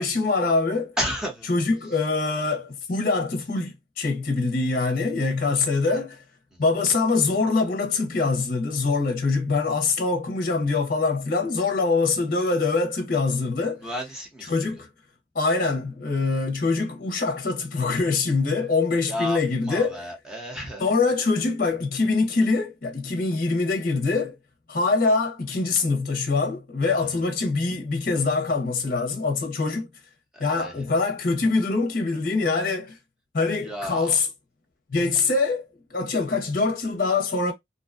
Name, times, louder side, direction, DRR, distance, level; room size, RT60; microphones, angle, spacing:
voice 1, 0.0-0.9 1.5-6.2 6.6-13.9 14.5-14.9 15.3-20.1 20.8-24.4 24.7-29.9 30.4-33.0 33.3-34.3 34.9-35.6 35.9-37.5, left 3 dB, 50° left, 0.6 m, -24 dB
voice 2, 1.0-1.6 13.8-14.5 19.0-19.4 19.6-20.9 27.0-27.1 30.3-30.7 33.6-34.2, equal, 5° right, 0.8 m, -32 dB
2.5 x 2.2 x 2.4 m
head